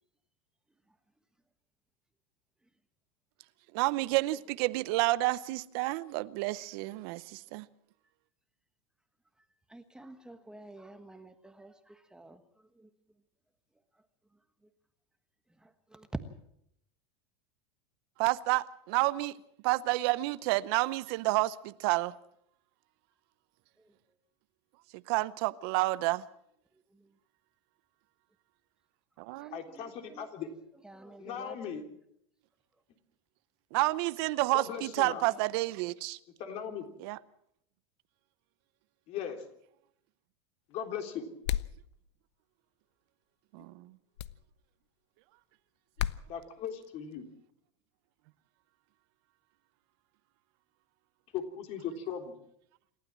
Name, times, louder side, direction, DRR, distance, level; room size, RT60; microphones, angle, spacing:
voice 1, 3.7-7.7 18.2-19.4 19.6-22.1 25.1-26.2 29.2-29.6 33.7-36.2 37.0-37.2 43.5-43.9, right 19 dB, 60° right, 0.8 m, -30 dB
voice 2, 9.4-12.9 13.9-14.0 14.3-14.7 15.5-16.1 23.8-24.2 26.7-27.2 29.4-30.5 30.8-31.8 35.3-35.4, right 2 dB, 5° right, 1.3 m, -54 dB
voice 3, 29.5-30.5 31.2-31.8 34.5-35.2 36.4-36.9 39.1-39.4 40.7-41.3 46.3-47.2 51.3-52.3, left 8 dB, 50° left, 3.6 m, -38 dB
sound 1, 41.4-41.8 44.2-44.4 46.0-46.2, left 12 dB, 85° left, 0.8 m, -32 dB
27.5 x 12.5 x 7.5 m
supercardioid pair, 130°, 14 cm